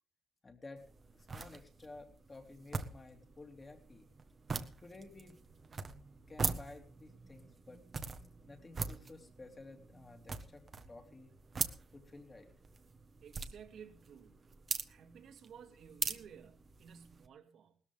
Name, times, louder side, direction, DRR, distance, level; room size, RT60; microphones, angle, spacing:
voice 1, 0.4-0.8 1.1-4.1 4.8-5.4 6.3-7.8 8.4-11.3 11.9-12.5, left 3 dB, 20° left, 2.8 m, -53 dB
sound 1, 0.8-17.3, right 4 dB, 30° right, 1.4 m, -43 dB
voice 2, 13.2-14.4 14.9-17.8, right 7 dB, 60° right, 2.3 m, -55 dB
19.5 x 13.5 x 3.5 m
cardioid pair, 130°, 0 cm